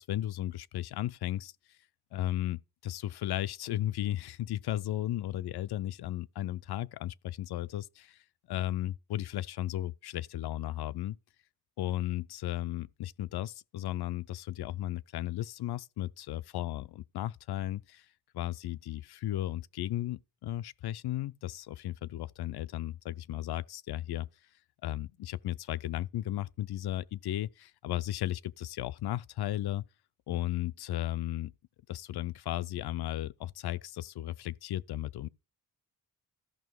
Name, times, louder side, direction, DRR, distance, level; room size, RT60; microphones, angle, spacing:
voice 1, 0.0-1.5 2.1-11.2 11.8-18.1 18.3-24.3 24.8-29.8 30.3-31.5 31.9-35.3, left 13 dB, 90° left, 0.5 m, -35 dB
13.5 x 5.7 x 4.6 m
wide cardioid pair, 145°, 38 cm